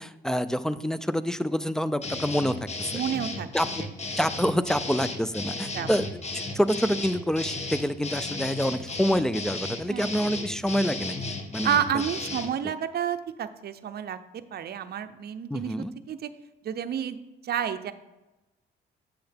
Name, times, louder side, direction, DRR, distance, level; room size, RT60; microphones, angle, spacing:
voice 1, 0.0-3.0 3.5-3.9 4.2-11.8 15.5-15.9, equal, 5° left, 14 dB, 0.3 m, -27 dB
sound 1, 2.0-12.5, left 3 dB, 35° left, 1.1 m, -34 dB
voice 2, 2.9-3.5 3.8-3.9 5.7-5.9 9.9-10.2 11.6-14.2 14.5-16.3 16.6-17.2 17.4-17.9, right 9 dB, 55° right, 10 dB, 0.6 m, -30 dB
7.8 x 7.0 x 3.4 m, 1.0 s
cardioid pair, 90°, 20 cm